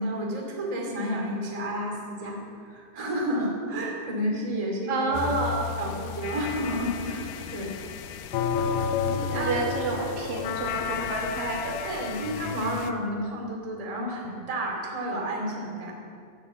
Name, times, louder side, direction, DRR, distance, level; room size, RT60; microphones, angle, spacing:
voice 1, 0.0-5.1 5.8-7.7 9.0-9.6 10.0-10.2 11.8-15.9, equal, 15° right, -1 dB, 1.3 m, -31 dB
voice 2, 4.9-5.7 8.4-8.8 9.3-11.8, right 2 dB, 55° right, -2 dB, 3.8 m, -29 dB
sound 1, 5.1-12.9, left 7 dB, 80° left, 2.5 m, -32 dB
11.0 x 10.5 x 8.2 m, 2.3 s
omnidirectional pair, 5.1 m